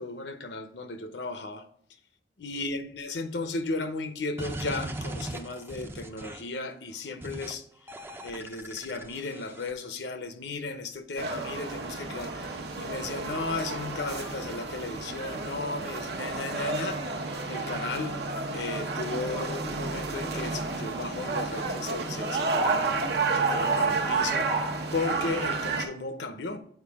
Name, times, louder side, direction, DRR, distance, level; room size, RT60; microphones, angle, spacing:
voice 1, 0.0-1.7 2.4-7.7 8.2-17.0 17.5-18.2 18.5-22.9 23.4-24.5 24.9-26.6, left 3 dB, 80° left, 0.8 m, -35 dB
sound 1, 4.4-6.6 7.2-7.5 7.9-9.7, right 1 dB, 15° right, 0.5 m, -39 dB
sound 2, 11.2-25.9, right 3 dB, 65° right, 0.9 m, -30 dB
8.1 x 4.7 x 3.5 m
head